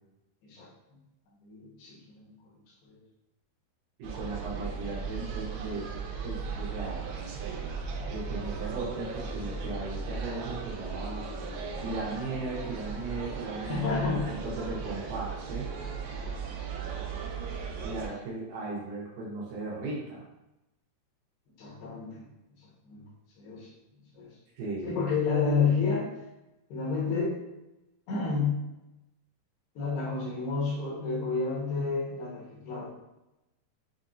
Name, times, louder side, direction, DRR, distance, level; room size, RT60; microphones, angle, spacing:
voice 1, 1.4-2.3 2.8-3.0 13.6-14.3 16.1-16.8 21.6-22.2 22.9-23.0 23.4-23.7 24.1-24.3 24.8-26.1 26.7-27.4 28.1-28.7 29.8-32.9, left 4 dB, 85° left, -5 dB, 3.2 m, -30 dB
voice 2, 4.0-5.9 6.2-7.1 8.1-11.2 11.8-15.7 17.8-20.2 24.6-25.0, right 2 dB, 70° right, -5 dB, 2.5 m, -37 dB
sound 1, 4.0-18.1, right 5 dB, 90° right, 2.7 m, -37 dB
7.2 x 2.7 x 2.5 m, 0.95 s
omnidirectional pair, 4.5 m